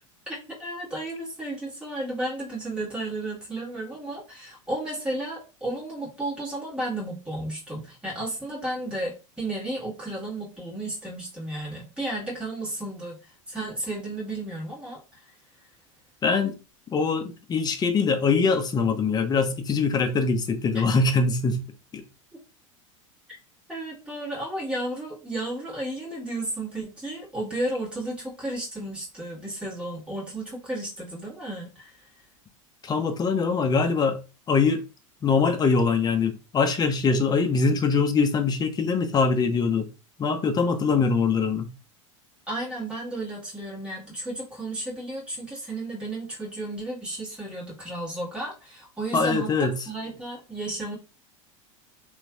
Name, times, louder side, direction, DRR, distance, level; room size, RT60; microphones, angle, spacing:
voice 1, 0.3-13.2 13.5-15.0 20.7-20.9 23.7-31.9 42.5-50.9, right 1 dB, 5° right, 1.6 m, -33 dB
voice 2, 16.2-16.6 16.9-21.6 21.9-22.0 32.8-34.2 34.5-34.9 35.2-39.9 40.2-41.7 49.1-49.7, left 4 dB, 25° left, 0.6 m, -23 dB
3.0 x 2.6 x 2.3 m
hypercardioid pair, 95°, 17 cm